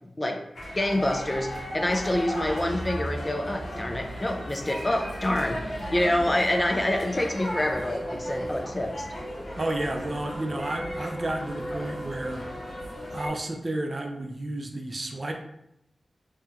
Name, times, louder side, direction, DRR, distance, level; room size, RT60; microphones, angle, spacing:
sound 1, 0.5-13.3, equal, 80° left, 0.9 m, -35 dB
voice 1, 0.8-9.1, left 1 dB, 25° left, 4 dB, 0.4 m, -27 dB
voice 2, 9.6-12.4 13.1-15.3, right 1 dB, 40° right, 3 dB, 0.4 m, -31 dB
2.8 x 2.3 x 3.4 m, 0.80 s
wide cardioid pair, 70°, 0 cm